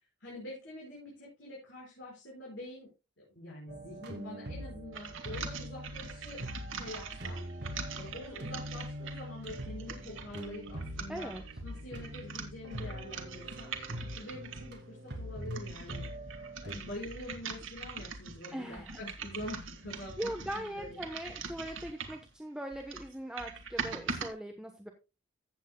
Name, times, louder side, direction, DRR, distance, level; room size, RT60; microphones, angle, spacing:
voice 1, 0.2-2.9 3.2-6.4 6.7-7.4 8.0-11.3 11.6-13.8 14.1-16.1 16.6-21.0, left 1 dB, 70° left, -4 dB, 5.1 m, -45 dB
sound 1, 3.7-16.7, equal, 60° right, 2.3 m, -43 dB
sound 2, 4.9-14.8 15.3-22.3 22.7-24.3, right 5 dB, 90° right, 1.7 m, -43 dB
voice 2, 11.1-11.4 18.5-19.0 20.2-24.9, equal, 5° right, 4 dB, 1.0 m, -40 dB
15.0 x 8.2 x 2.2 m, 0.28 s
head